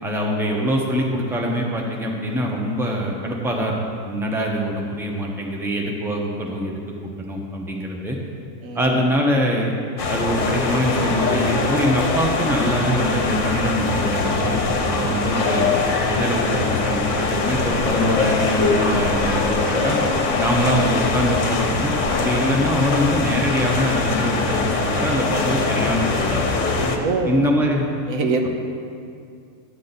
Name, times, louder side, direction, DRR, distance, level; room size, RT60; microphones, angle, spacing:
voice 1, 0.0-3.8 4.0-8.2 8.7-9.7 10.1-14.6 14.9-15.7 16.1-20.0 20.4-26.5 27.3-27.9, equal, ahead, -1 dB, 0.9 m, -23 dB
sound 1, 10.0-27.0, left 3 dB, 60° left, 1.2 m, -22 dB
voice 2, 15.0-15.3 27.0-27.5 28.1-28.5, right 3 dB, 75° right, 4 dB, 1.2 m, -25 dB
12.0 x 8.4 x 4.1 m, 2.4 s
omnidirectional pair, 1.4 m